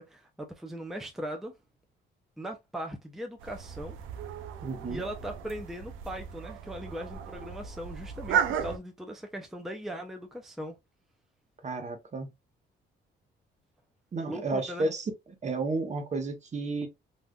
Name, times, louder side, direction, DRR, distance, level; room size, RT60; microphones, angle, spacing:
voice 1, 0.0-1.5 2.4-4.0 4.9-10.8 14.3-14.9, equal, ahead, 0.5 m, -39 dB
sound 1, 3.4-8.8, right 8 dB, 85° right, 0.5 m, -34 dB
voice 2, 4.6-5.0 11.6-12.3 14.1-15.1 15.4-16.9, right 3 dB, 35° right, 0.8 m, -32 dB
3.5 x 2.5 x 2.2 m
cardioid pair, 90°, 20 cm